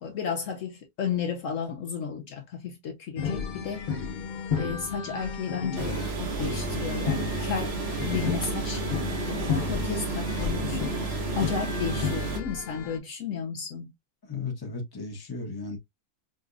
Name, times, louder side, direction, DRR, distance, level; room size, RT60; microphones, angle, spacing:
voice 1, 0.0-3.9 4.6-7.8 8.0-8.9 9.2-13.9, left 6 dB, 65° left, 0.9 m, -33 dB
sound 1, 3.2-13.0, left 6 dB, 85° left, 0.4 m, -33 dB
sound 2, 5.8-12.4, right 4 dB, 50° right, 1.0 m, -31 dB
voice 2, 14.3-15.8, left 4 dB, 20° left, 0.8 m, -35 dB
4.9 x 2.3 x 2.5 m
omnidirectional pair, 1.6 m